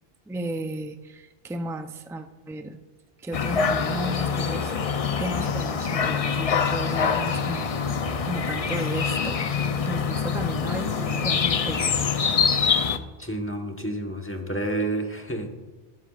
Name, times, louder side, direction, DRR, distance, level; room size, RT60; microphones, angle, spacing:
voice 1, 0.3-2.8 3.2-7.9 8.3-9.5 9.8-11.8, right 1 dB, 5° right, 7 dB, 0.3 m, -34 dB
sound 1, 3.3-13.0, left 6 dB, 45° left, 0.5 m, -25 dB
voice 2, 13.2-15.6, right 1 dB, 15° left, 2 dB, 1.1 m, -30 dB
13.5 x 13.5 x 2.4 m, 1.2 s
omnidirectional pair, 1.0 m